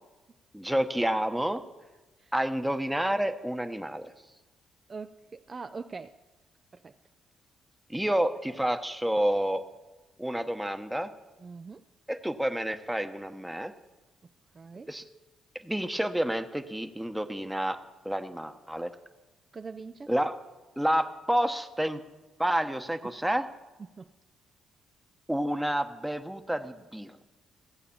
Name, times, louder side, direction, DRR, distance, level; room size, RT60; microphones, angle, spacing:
voice 1, 0.5-1.6 2.3-4.1 7.9-9.6 10.2-11.1 12.1-13.7 14.9-15.0 15.6-17.8 18.0-18.9 20.1-20.4 20.8-22.0 22.4-23.5 25.3-27.2, right 1 dB, 5° right, 8 dB, 0.9 m, -29 dB
voice 2, 4.9-6.2 6.7-6.9 11.4-11.8 14.5-14.9 19.5-20.1 23.9-24.1, right 4 dB, 35° right, 8 dB, 0.4 m, -42 dB
16.0 x 8.3 x 7.0 m, 1.2 s
cardioid pair, 90°, 0 cm